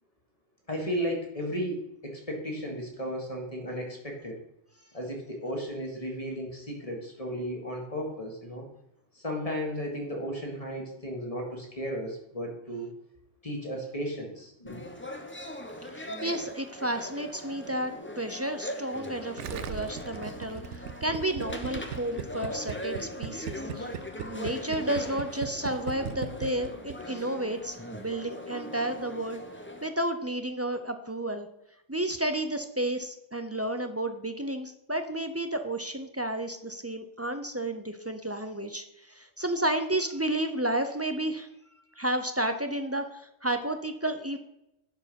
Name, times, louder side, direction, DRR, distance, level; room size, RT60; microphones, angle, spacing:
voice 1, 0.7-4.4 4.9-8.7 9.1-12.9 13.4-14.8, equal, 30° left, 0 dB, 1.9 m, -34 dB
sound 1, 14.7-29.9, left 1 dB, 10° left, 0.7 m, -40 dB
voice 2, 15.9-24.0 24.3-29.4 29.8-31.5 31.9-41.5 42.0-44.4, right 1 dB, 20° right, 7 dB, 0.4 m, -32 dB
Gurgling, 19.4-27.0 27.2-27.3, right 9 dB, 75° right, 0.9 m, -37 dB
11.0 x 4.6 x 5.3 m, 0.84 s
omnidirectional pair, 1.2 m